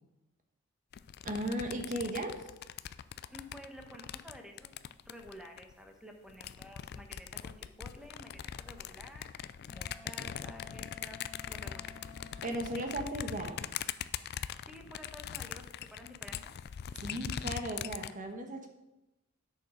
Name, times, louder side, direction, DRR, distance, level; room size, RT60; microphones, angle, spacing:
sound 1, 0.9-5.7 6.3-18.1, left 9 dB, 50° left, 0.3 m, -42 dB
voice 1, 1.2-2.5 12.4-13.7 16.9-18.7, right 1 dB, 40° right, 4 dB, 1.3 m, -36 dB
voice 2, 3.3-4.7 5.0-9.3 9.7-11.2 11.4-11.9 14.6-16.6, equal, 5° right, 3 dB, 1.1 m, -51 dB
Wind instrument woodwind instrument, 9.7-13.1, left 3 dB, 30° left, 0.9 m, -53 dB
9.0 x 6.6 x 5.0 m, 0.97 s
head